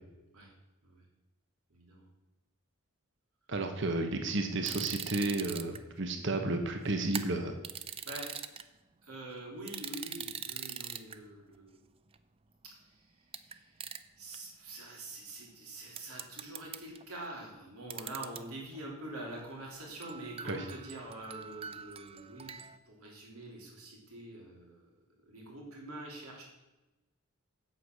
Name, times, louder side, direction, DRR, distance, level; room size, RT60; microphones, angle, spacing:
voice 1, 1.7-2.0 8.1-8.3 9.0-11.8 12.8-24.9 25.2-26.4, right 1 dB, 85° right, -1 dB, 3.3 m, -45 dB
voice 2, 3.5-7.6 20.5-20.6, right 2 dB, 55° right, 5 dB, 1.0 m, -32 dB
sound 1, 4.7-5.8 7.1-8.6 9.7-11.2 12.1-12.2 13.3-13.5 13.8-14.0 14.3-14.4 16.0-17.0 17.9-18.4 18.7-18.8 19.2-19.5 20.0-22.8, right 8 dB, 25° right, 0.4 m, -42 dB
8.3 x 8.0 x 6.2 m, 1.0 s
head